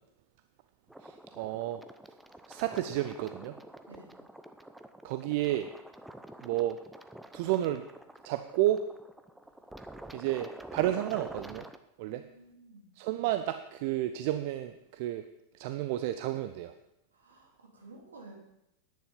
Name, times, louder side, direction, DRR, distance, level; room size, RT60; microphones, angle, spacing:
sound 1, 0.9-11.8, right 1 dB, 5° right, 0.7 m, -48 dB
voice 1, 1.0-1.8 2.5-3.6 5.0-5.7 6.4-6.8 7.3-7.8 8.2-8.8 10.1-11.7 12.0-12.2 13.0-15.3 15.5-16.7, right 13 dB, 50° right, 10 dB, 0.5 m, -31 dB
voice 2, 12.0-12.9 17.1-18.4, right 3 dB, 70° right, -1 dB, 3.0 m, -53 dB
10.0 x 9.7 x 5.4 m, 0.86 s
figure-of-eight pair, 90°, 0 cm